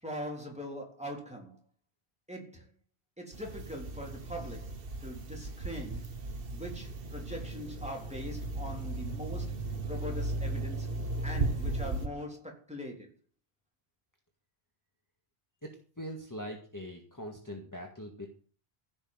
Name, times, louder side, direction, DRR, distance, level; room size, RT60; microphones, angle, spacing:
voice 1, 0.0-1.6 2.3-2.7 3.2-6.1 6.5-10.9 11.2-13.1, equal, 5° right, 3.5 m, -42 dB
sound 1, 3.3-12.1, right 2 dB, 60° right, 1.4 m, -36 dB
voice 2, 15.6-18.3, equal, 15° left, 1.9 m, -42 dB
15.5 x 6.6 x 7.9 m
omnidirectional pair, 1.1 m